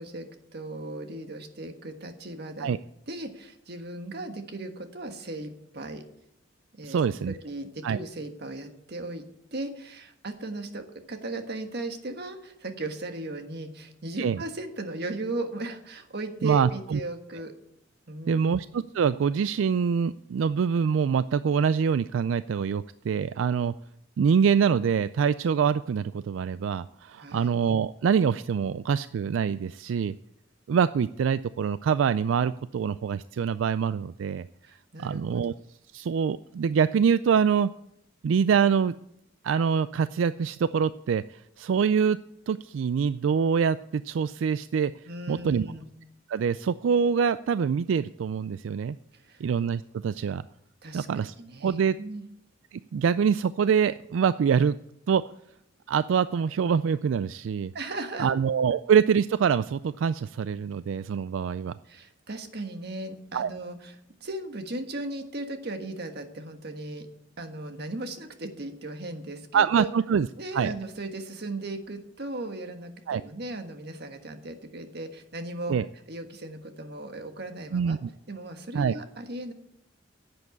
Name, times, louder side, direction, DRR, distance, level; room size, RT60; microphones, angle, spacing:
voice 1, 0.0-2.7 3.1-6.0 6.7-7.0 7.3-9.2 9.5-17.5 18.1-18.6 27.2-27.5 34.6-35.4 45.0-45.8 49.1-49.4 50.8-52.2 57.7-58.3 61.9-63.9 64.2-67.1 67.4-69.9 70.4-75.7 76.1-78.0 78.3-79.5, right 2 dB, 60° right, 6 dB, 1.5 m, -37 dB
voice 2, 6.8-7.4 7.8-8.0 14.2-14.4 16.4-17.0 18.3-23.7 24.2-30.1 30.7-34.5 35.0-35.5 35.9-37.7 38.2-38.9 39.4-42.2 42.5-44.9 45.3-45.7 46.3-49.0 49.4-50.4 50.9-51.3 51.6-51.9 52.7-54.8 55.1-55.2 55.9-57.7 58.2-61.7 63.3-63.5 69.5-70.3 70.5-70.7 73.1-73.2 75.7-75.9 77.7-78.1 78.7-79.0, right 7 dB, 85° right, 15 dB, 0.3 m, -25 dB
10.5 x 7.9 x 8.2 m, 0.78 s
head